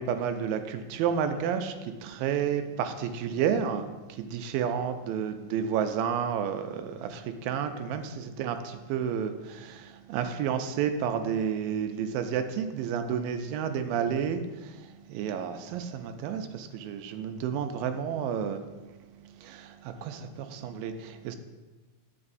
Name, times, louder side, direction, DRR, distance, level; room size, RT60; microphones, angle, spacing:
voice 1, 0.0-18.9 19.2-21.4, right 8 dB, 80° right, 8 dB, 2.2 m, -31 dB
9.6 x 7.8 x 2.6 m, 1.2 s
omnidirectional pair, 4.2 m